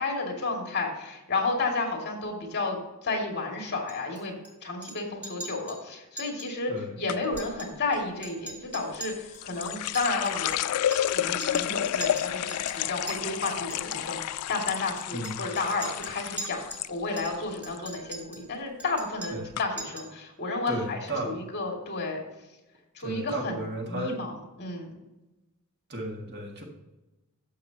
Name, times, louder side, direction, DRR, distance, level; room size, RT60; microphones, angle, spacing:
voice 1, 0.0-4.3 4.6-10.8 11.1-22.2 22.9-23.6 23.9-24.9, left 3 dB, 50° left, 1 dB, 2.4 m, -32 dB
Chink clink, 3.9-4.5 4.8-5.0 5.2-5.8 6.2-6.5 6.8-6.9 7.2-8.0 8.2-11.2 11.4-11.7 12.0-13.2 13.7-14.0 14.7-16.9 17.2-18.5 18.8-19.5 19.8-20.2, right 2 dB, 5° right, 2.1 m, -41 dB
sound 1, 7.1-7.5 8.9-16.9 17.2-17.8 18.1-18.5 19.1-19.2 19.5-19.6, left 11 dB, 90° left, 0.3 m, -31 dB
voice 2, 20.7-21.3 23.0-24.2 25.9-26.6, right 1 dB, 50° right, 0 dB, 2.0 m, -33 dB
12.0 x 7.7 x 2.9 m, 1.0 s
head